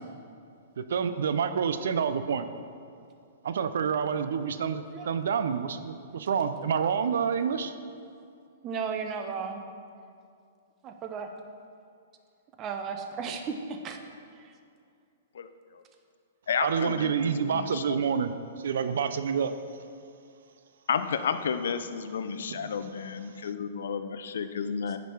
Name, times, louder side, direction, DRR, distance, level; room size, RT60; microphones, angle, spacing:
voice 1, 0.8-2.4 3.4-7.7 16.6-18.3 18.6-19.5, right 7 dB, 70° right, 10 dB, 0.5 m, -28 dB
voice 2, 8.6-9.6 10.8-11.3 12.6-13.6 13.8-14.0 14.4-14.5, right 6 dB, 30° right, 5 dB, 0.8 m, -34 dB
voice 3, 15.3-15.8 16.5-18.0 20.9-25.0, left 6 dB, 75° left, 11 dB, 0.5 m, -32 dB
10.0 x 5.2 x 4.6 m, 2.4 s
hypercardioid pair, 125°, 0 cm